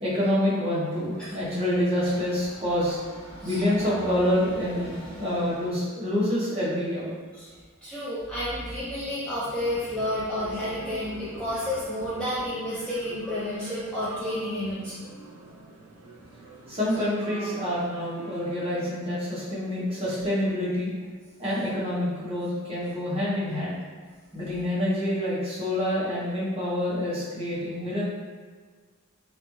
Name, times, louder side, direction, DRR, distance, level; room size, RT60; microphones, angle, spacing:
voice 1, 0.0-3.0 3.4-7.1 16.7-20.9 21.4-23.7 24.3-28.0, left 1 dB, 25° right, -9 dB, 0.8 m, -27 dB
Train, 1.0-5.9, equal, 25° left, 0.7 m, -44 dB
voice 2, 7.8-15.1, left 1 dB, 5° left, -11 dB, 0.3 m, -31 dB
sound 1, 9.4-19.0, right 2 dB, 85° right, 0.4 m, -44 dB
2.4 x 2.2 x 2.9 m, 1.5 s
head